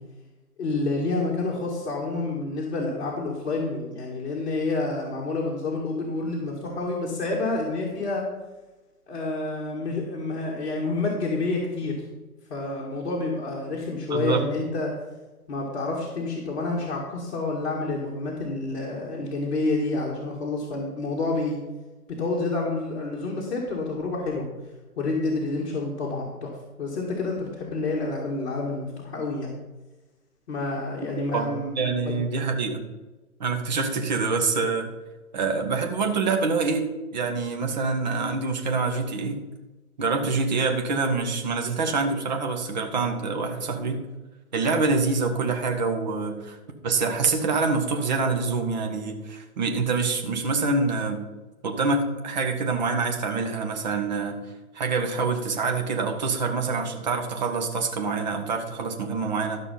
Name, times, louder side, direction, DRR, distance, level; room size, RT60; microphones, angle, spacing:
voice 1, 0.6-8.2 9.1-11.9 12.5-14.9 15.5-21.6 22.2-24.5 25.0-26.5 26.8-29.5 30.5-31.7 32.1-32.2, left 3 dB, 45° left, -4 dB, 2.2 m, -28 dB
voice 2, 14.1-14.5 31.3-31.5 31.8-32.8 33.4-34.9 35.3-39.4 40.0-44.0 44.5-46.6 46.8-51.2 51.6-54.4 54.7-59.6, right 4 dB, 30° right, 4 dB, 1.2 m, -26 dB
13.0 x 6.0 x 5.6 m, 1.1 s
hypercardioid pair, 160°, 45 cm